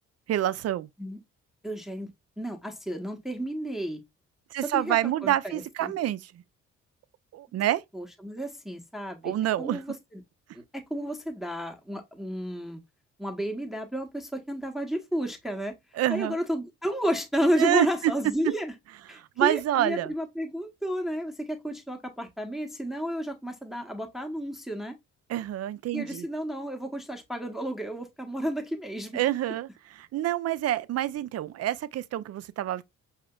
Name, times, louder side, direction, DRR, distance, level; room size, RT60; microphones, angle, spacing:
voice 1, 0.3-0.9 4.5-6.4 7.3-7.8 9.2-9.8 16.0-16.4 17.6-17.9 19.1-20.1 25.3-26.3 29.1-32.8, right 13 dB, 50° right, 0.4 m, -27 dB
voice 2, 1.6-2.1 2.4-4.0 4.6-5.9 7.9-10.2 10.5-12.8 13.2-15.7 16.1-18.7 19.1-25.0 25.9-29.2, equal, ahead, 0.8 m, -32 dB
4.8 x 2.8 x 2.2 m
hypercardioid pair, 50°, 34 cm